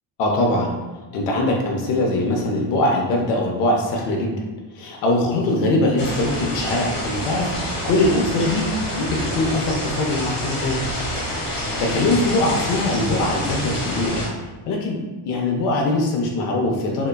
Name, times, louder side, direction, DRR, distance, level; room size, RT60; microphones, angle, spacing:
voice 1, 0.2-0.7 1.1-4.3 4.7-8.7 9.0-10.8 11.8-14.2 14.6-15.0 15.3-17.1, left 2 dB, 80° left, 0 dB, 0.6 m, -22 dB
sound 1, 6.0-14.3, equal, 55° left, 1.0 m, -27 dB
2.8 x 2.2 x 2.2 m, 1.2 s
cardioid pair, 170°, 50 cm